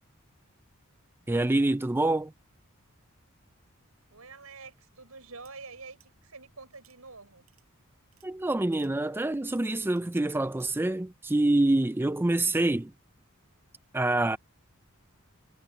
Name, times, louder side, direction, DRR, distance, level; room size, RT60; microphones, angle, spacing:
voice 1, 1.3-2.3 8.2-12.9 13.9-14.4, right 2 dB, 10° right, 0.4 m, -26 dB
voice 2, 4.1-7.5, right 4 dB, 90° right, 6.2 m, -47 dB
sound 1, 5.4-5.5 6.0-6.1 6.7-7.0 7.5-7.6 8.1-8.3 8.7-8.9 9.4-10.2 10.6-10.7, right 14 dB, 75° right, 7.9 m, -63 dB
head